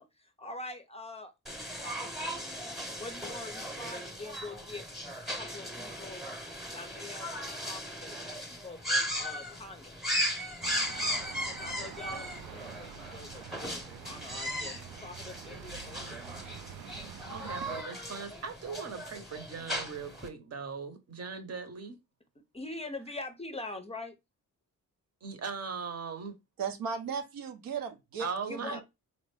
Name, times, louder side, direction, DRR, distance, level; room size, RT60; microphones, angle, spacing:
voice 1, 0.0-1.3 1.8-4.9 5.4-6.3 6.7-10.0 11.4-16.2 22.4-24.2 28.5-28.8, left 2 dB, 20° left, 0.5 m, -44 dB
sound 1, 1.5-20.3, equal, ahead, 0.9 m, -37 dB
sound 2, 10.6-17.8, right 10 dB, 65° right, 0.5 m, -47 dB
voice 2, 17.3-22.0 25.2-26.3 28.2-28.8, right 5 dB, 45° right, 0.9 m, -39 dB
voice 3, 26.6-28.8, right 6 dB, 85° right, 0.8 m, -36 dB
4.2 x 2.5 x 3.2 m
cardioid pair, 125°, 34 cm